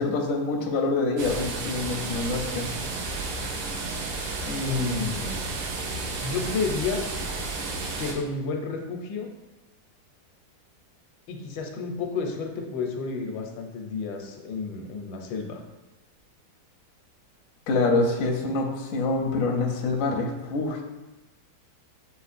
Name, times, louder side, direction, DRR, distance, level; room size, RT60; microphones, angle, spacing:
voice 1, 0.0-2.7 4.4-5.0 17.7-20.8, left 3 dB, 70° left, 1 dB, 0.8 m, -26 dB
sound 1, 1.2-8.1, right 3 dB, 80° right, 1.4 m, -32 dB
voice 2, 4.6-5.5 6.2-7.0 8.0-9.3 11.3-15.6, left 4 dB, 85° left, 3 dB, 1.3 m, -31 dB
6.3 x 2.8 x 2.5 m, 1.0 s
omnidirectional pair, 2.0 m